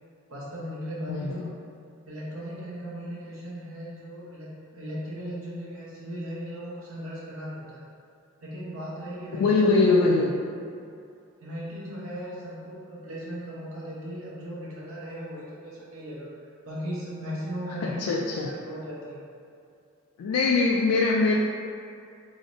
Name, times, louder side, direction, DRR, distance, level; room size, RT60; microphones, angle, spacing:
voice 1, 0.3-1.5 2.1-7.8 8.4-9.8 11.4-16.3 16.6-18.1 18.4-19.2, equal, 75° right, -7 dB, 0.8 m, -37 dB
voice 2, 1.1-1.5 9.3-10.3 17.7-18.5 20.2-21.4, left 3 dB, 85° left, -1 dB, 0.3 m, -22 dB
4.8 x 2.0 x 2.5 m, 2.4 s
head